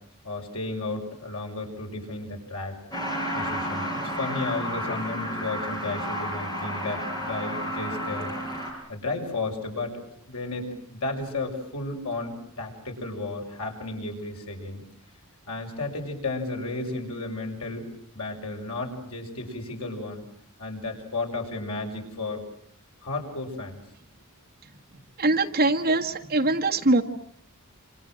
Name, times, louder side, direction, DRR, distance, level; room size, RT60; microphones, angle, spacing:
voice 1, 0.2-2.8 3.3-3.9 4.2-8.4 8.9-10.0 10.3-14.8 15.5-17.8 18.1-20.2 20.6-22.4 23.0-23.8, left 2 dB, 75° left, 2 dB, 6.4 m, -33 dB
Truck, 2.9-8.7, equal, 20° left, 6.6 m, -31 dB
voice 2, 25.2-27.0, right 2 dB, 45° right, 3 dB, 1.7 m, -22 dB
27.5 x 27.0 x 7.7 m, 0.67 s
head